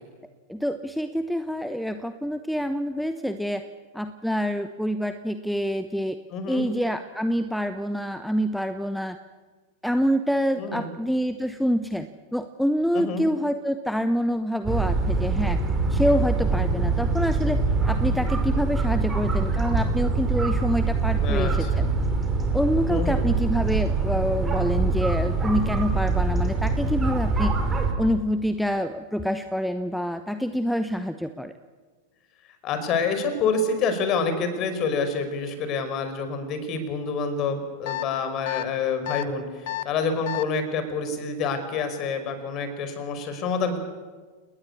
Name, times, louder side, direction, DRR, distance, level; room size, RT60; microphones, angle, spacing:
voice 1, 0.5-3.6 3.9-6.2 6.5-9.2 9.8-12.1 12.3-15.6 15.9-21.9 22.5-27.5 28.0-31.5, equal, ahead, 10 dB, 1.0 m, -26 dB
voice 2, 6.3-6.7 10.6-10.9 12.9-13.3 21.2-21.9 22.9-23.3 32.6-43.8, left 4 dB, 35° left, 9 dB, 5.1 m, -27 dB
sound 1, 14.6-27.9, right 3 dB, 20° right, 5.2 m, -24 dB
sound 2, 37.9-38.0 38.5-38.6 39.1-39.2 39.7-39.8 40.3-40.4, left 16 dB, 55° left, 1.2 m, -30 dB
29.5 x 19.5 x 8.6 m, 1.4 s
figure-of-eight pair, 90°, 0 cm